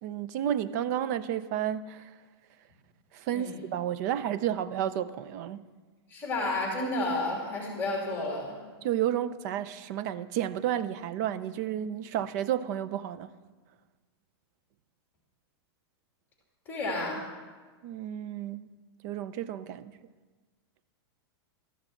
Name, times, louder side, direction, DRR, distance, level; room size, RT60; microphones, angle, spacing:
voice 1, 0.0-2.1 3.1-5.7 8.8-13.3 17.8-18.7 19.0-20.0, right 11 dB, 40° right, 0.5 m, -31 dB
voice 2, 6.1-8.6 16.7-17.2, left 2 dB, 15° left, 2.8 m, -31 dB
14.0 x 11.5 x 5.8 m
supercardioid pair, 160°, 14 cm